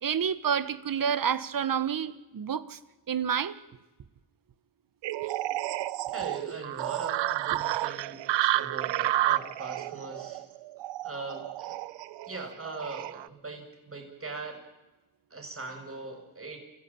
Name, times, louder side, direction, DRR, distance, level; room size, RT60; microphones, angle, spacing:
voice 1, 0.0-2.8 3.1-3.6 12.2-12.3, right 8 dB, 50° right, 1.6 m, -29 dB
sound 1, 5.0-13.3, right 14 dB, 80° right, 0.9 m, -31 dB
voice 2, 6.1-10.4 11.0-11.8 12.3-14.6 15.3-16.6, right 3 dB, 30° right, 7.4 m, -41 dB
28.5 x 16.0 x 8.8 m
cardioid pair, 75°, 43 cm